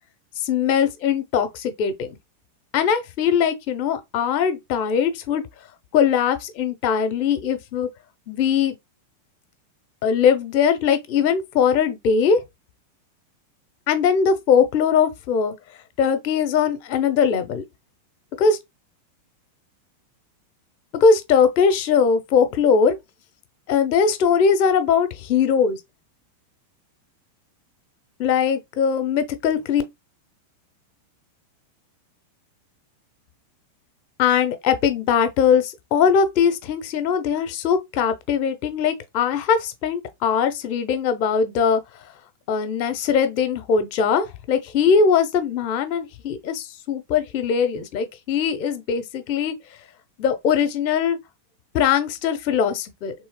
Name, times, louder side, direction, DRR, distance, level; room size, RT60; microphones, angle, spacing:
voice 1, 0.4-2.2 2.7-5.4 5.9-7.9 8.3-8.7 10.0-12.4 13.9-15.5 16.0-17.6 18.4-18.6 20.9-23.0 23.7-25.8 28.2-29.8 34.2-41.8 42.5-49.5 50.2-51.2 51.7-53.1, left 6 dB, 50° left, 0.7 m, -20 dB
3.1 x 3.1 x 2.3 m
figure-of-eight pair, 95°, 0 cm